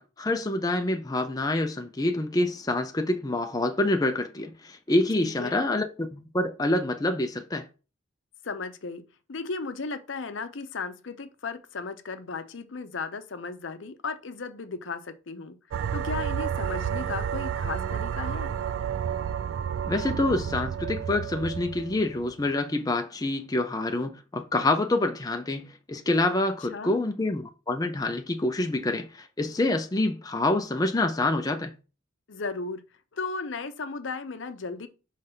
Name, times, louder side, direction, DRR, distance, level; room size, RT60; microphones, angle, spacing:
voice 1, 0.0-7.7 19.9-31.7, left 2 dB, 20° left, 0.5 m, -27 dB
voice 2, 5.2-5.7 8.4-9.0 9.3-15.6 15.9-18.5 26.7-27.0 32.3-32.8 33.1-34.9, left 4 dB, 70° left, 0.7 m, -35 dB
sound 1, 15.7-22.3, right 8 dB, 80° right, 0.3 m, -31 dB
5.3 x 3.3 x 5.6 m
head